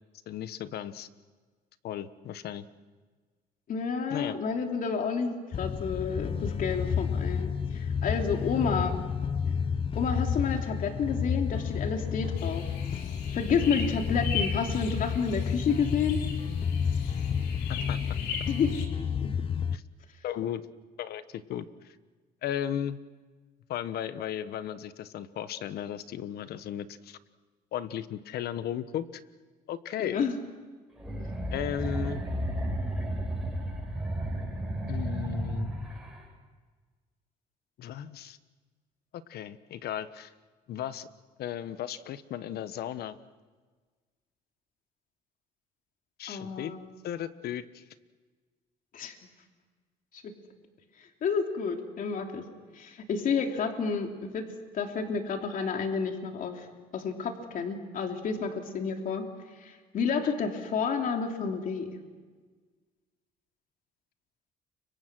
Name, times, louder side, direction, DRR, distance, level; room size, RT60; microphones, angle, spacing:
voice 1, 0.3-1.1 1.8-2.7 4.1-4.4 17.7-18.0 19.7-19.8 20.2-20.6 21.0-21.9 22.4-23.0 23.7-27.2 27.7-29.1 29.7-30.2 31.5-32.2 34.9-35.7 37.8-38.4 39.1-40.3 40.7-41.1 41.4-43.2 46.2-46.7 47.0-47.8 53.6-53.7 60.1-60.3, left 10 dB, 70° left, 13 dB, 1.2 m, -35 dB
voice 2, 3.7-5.3 5.6-9.0 9.9-12.6 13.3-16.2 18.5-18.7 19.2-19.3 30.0-30.4 46.3-46.9 48.9-49.2 50.2-50.3 51.2-52.4 52.7-54.4 54.7-56.7 56.9-59.2 59.6-61.9, left 5 dB, 55° left, 3 dB, 3.1 m, -30 dB
sound 1, 5.5-19.8, left 7 dB, 35° left, 0.7 m, -31 dB
sound 2, 12.4-18.9, left 6 dB, 85° left, 3.7 m, -39 dB
sound 3, 31.0-36.2, right 1 dB, 5° right, 6.7 m, -33 dB
30.0 x 24.5 x 6.2 m, 1.4 s
cardioid pair, 110°, 17 cm